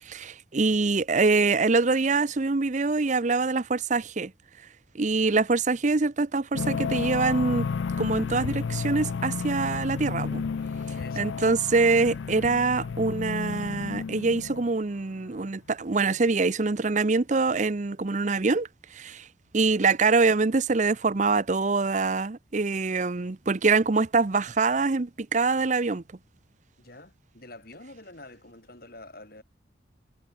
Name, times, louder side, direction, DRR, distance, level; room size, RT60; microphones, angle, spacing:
voice 1, 0.1-4.3 4.9-7.7 8.0-10.4 11.2-19.3 19.5-26.0, right 3 dB, 40° right, 0.6 m, -24 dB
sound 1, 6.5-14.8, left 5 dB, 80° left, 0.4 m, -32 dB
voice 2, 10.9-11.3 26.8-29.4, left 2 dB, 50° left, 5.4 m, -47 dB
head